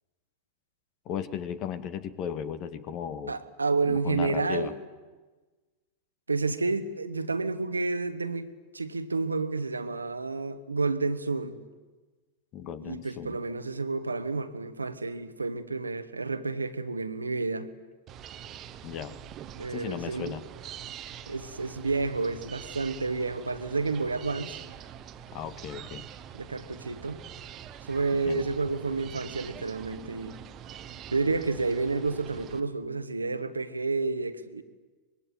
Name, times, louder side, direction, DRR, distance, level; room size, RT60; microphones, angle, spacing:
voice 1, 1.1-3.4 3.9-4.7 12.5-13.4 18.8-19.2 19.7-20.4 25.3-26.1 28.3-28.5, left 8 dB, 35° left, 1.7 m, -36 dB
voice 2, 3.3-4.7 6.3-11.6 12.8-17.7 19.6-20.3 21.3-24.6 26.3-27.2 27.9-30.4 31.1-34.6, right 3 dB, 80° right, 1.5 m, -30 dB
sound 1, 18.1-32.6, right 9 dB, 30° right, 1.4 m, -45 dB
25.0 x 21.5 x 9.5 m
figure-of-eight pair, 90°, 0 cm